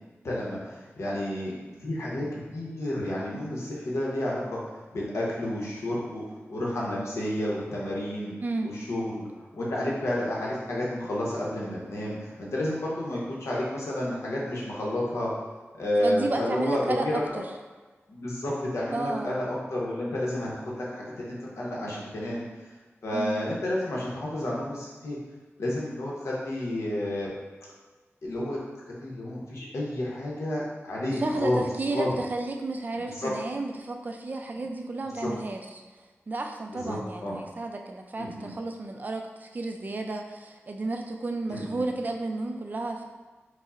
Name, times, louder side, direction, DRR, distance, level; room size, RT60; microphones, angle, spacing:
voice 1, 0.2-1.5 1.8-4.6 4.9-6.2 6.5-8.3 8.6-15.3 15.7-17.4 18.1-22.7 23.0-25.2 25.6-27.3 28.2-28.6 28.9-31.6 31.9-32.1 33.0-33.3 34.6-34.7 35.1-35.3 36.7-37.3 38.2-38.5 41.5-41.8, left 1 dB, 80° left, -5 dB, 0.8 m, -31 dB
voice 2, 8.4-8.7 16.0-17.4 18.9-19.4 23.1-23.4 31.2-35.7 36.3-43.1, right 2 dB, 40° right, 3 dB, 0.3 m, -32 dB
5.0 x 2.0 x 2.4 m, 1.3 s
wide cardioid pair, 120°, 5 cm